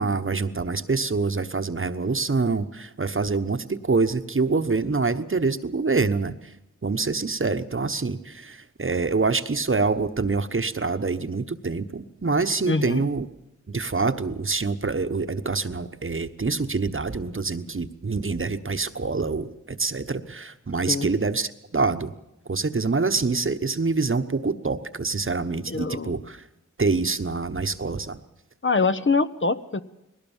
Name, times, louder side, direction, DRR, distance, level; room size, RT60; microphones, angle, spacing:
voice 1, 0.0-6.3 6.8-13.3 13.7-22.1 22.5-26.4 26.8-28.2, right 4 dB, 45° right, 10 dB, 1.1 m, -26 dB
voice 2, 12.7-13.0 20.9-21.1 25.7-26.1 28.6-29.8, left 4 dB, 40° left, 11 dB, 0.9 m, -24 dB
20.5 x 18.0 x 7.3 m, 0.91 s
wide cardioid pair, 50°, 30 cm